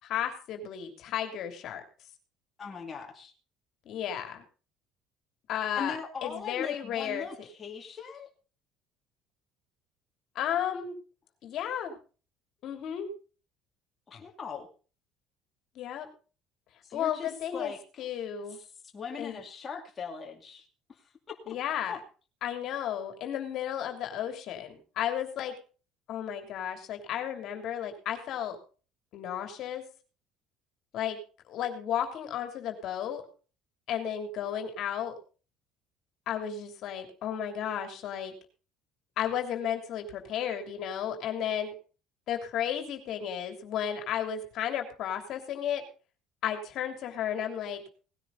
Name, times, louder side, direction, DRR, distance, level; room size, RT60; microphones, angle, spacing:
voice 1, 0.0-1.8 3.8-4.4 5.5-7.3 10.3-11.0 11.4-12.0 12.6-13.1 15.7-16.1 16.9-18.6 19.2-19.4 21.5-22.0 22.4-25.6 26.1-28.6 29.1-29.9 30.9-31.2 31.5-33.2 33.9-35.2 36.3-38.3 39.2-41.7 42.3-45.9 46.4-47.8, left 9 dB, 60° left, 5 dB, 3.0 m, -33 dB
voice 2, 2.6-3.3 5.7-8.3 14.1-14.7 16.8-18.2 18.6-18.7 18.9-21.5 21.9-22.0, left 6 dB, 30° left, 1 dB, 2.4 m, -40 dB
18.5 x 10.0 x 4.0 m, 0.37 s
supercardioid pair, 85°, 0 cm